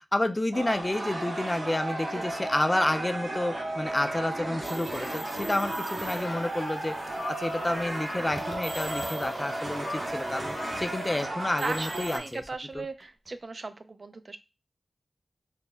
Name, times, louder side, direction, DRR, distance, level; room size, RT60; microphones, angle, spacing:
voice 1, 0.1-7.0 7.4-12.4 12.7-12.8, left 1 dB, 25° left, 8 dB, 0.4 m, -30 dB
sound 1, 0.5-12.2, right 1 dB, 85° right, 1.5 m, -34 dB
sound 2, 4.6-6.3 7.2-7.6 8.3-9.4 11.2-13.3, right 1 dB, 30° right, 0.9 m, -43 dB
voice 2, 5.0-5.5 9.3-9.4 11.6-14.4, right 3 dB, 55° right, 9 dB, 0.4 m, -38 dB
sound 3, 5.5-11.2, left 3 dB, 75° left, 0.5 m, -44 dB
4.2 x 2.0 x 3.4 m, 0.27 s
wide cardioid pair, 70°, 0 cm